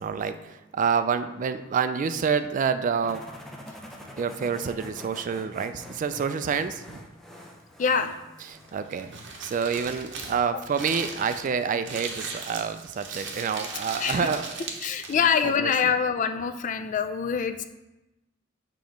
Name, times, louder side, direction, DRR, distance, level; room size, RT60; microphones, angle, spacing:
voice 1, 0.0-3.2 4.2-7.0 8.4-9.1 9.4-14.7 15.1-15.9, right 6 dB, 40° right, 11 dB, 0.3 m, -28 dB
sound 1, 3.0-8.8, left 1 dB, ahead, 0.6 m, -45 dB
voice 2, 7.8-8.1 14.0-14.3 14.8-17.6, left 6 dB, 40° left, 8 dB, 0.3 m, -25 dB
Crumpling crinkling, 8.6-15.3, right 4 dB, 65° right, 0.9 m, -38 dB
6.8 x 3.0 x 5.2 m, 1.0 s
head